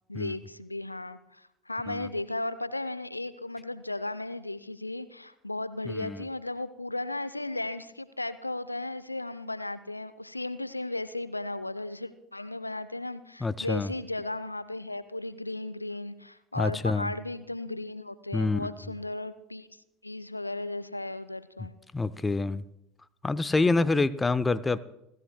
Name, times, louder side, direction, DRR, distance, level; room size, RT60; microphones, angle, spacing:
voice 1, 0.1-21.7, left 2 dB, 85° left, 15 dB, 0.6 m, -35 dB
voice 2, 5.9-6.2 13.4-13.9 16.6-17.1 18.3-18.7 21.9-22.6 23.2-24.8, left 3 dB, 15° left, 16 dB, 0.6 m, -27 dB
29.5 x 13.5 x 2.2 m, 0.86 s
figure-of-eight pair, 70°, 0 cm